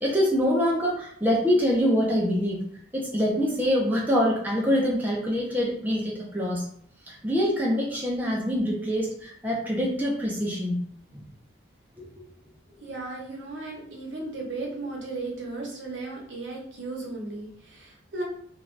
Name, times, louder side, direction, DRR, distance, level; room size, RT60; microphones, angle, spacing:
voice 1, 0.0-2.6 2.9-6.7 7.1-10.8 11.1-11.2 12.0-12.1, equal, 10° right, -4 dB, 0.5 m, -25 dB
voice 2, 12.8-18.2, right 3 dB, 75° right, -2 dB, 0.9 m, -35 dB
2.5 x 2.3 x 3.1 m, 0.64 s
head